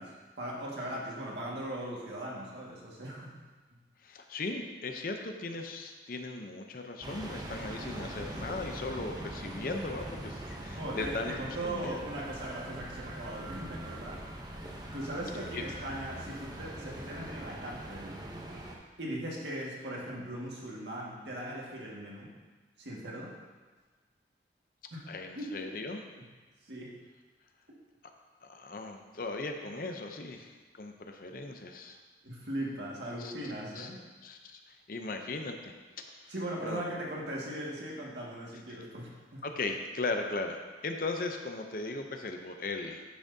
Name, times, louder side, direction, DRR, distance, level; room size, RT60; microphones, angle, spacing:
voice 1, 0.0-3.3 10.8-14.2 14.9-18.2 19.0-22.3 22.8-23.3 24.9-25.0 25.4-25.7 26.6-26.9 32.2-34.0 36.3-39.4, right 1 dB, 75° right, -4 dB, 1.7 m, -39 dB
voice 2, 4.0-12.0 15.5-15.6 25.1-26.0 28.4-32.0 33.2-33.3 33.8-33.9 34.2-35.7 36.2-36.3 36.6-36.8 39.4-43.0, left 3 dB, 50° left, 4 dB, 0.6 m, -38 dB
sound 1, 7.0-18.8, right 1 dB, 20° right, 0.7 m, -42 dB
10.0 x 6.2 x 2.7 m, 1.3 s
head